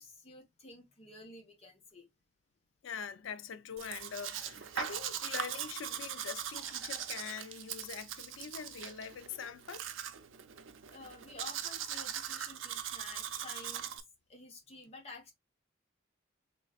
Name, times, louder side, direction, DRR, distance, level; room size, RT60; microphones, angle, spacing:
voice 1, 0.0-2.1 10.9-13.9 14.3-15.3, left 2 dB, 35° left, 1.1 m, -51 dB
voice 2, 2.8-9.9, left 7 dB, 90° left, 0.5 m, -43 dB
Domestic sounds home sounds, 3.8-14.0, right 9 dB, 90° right, 0.5 m, -41 dB
3.8 x 3.2 x 2.3 m
head